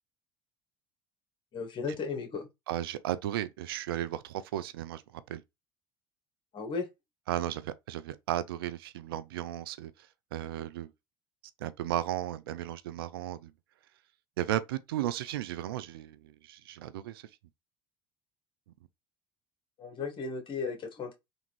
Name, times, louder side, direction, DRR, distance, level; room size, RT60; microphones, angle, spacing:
voice 1, 1.5-2.5 6.5-6.9 19.8-21.1, left 5 dB, 45° left, 1.3 m, -35 dB
voice 2, 2.7-5.0 5.3-5.4 7.3-9.9 10.3-10.9 11.6-13.5 14.4-17.2, right 12 dB, 85° right, 0.4 m, -34 dB
3.4 x 2.5 x 2.9 m
hypercardioid pair, 75°, 12 cm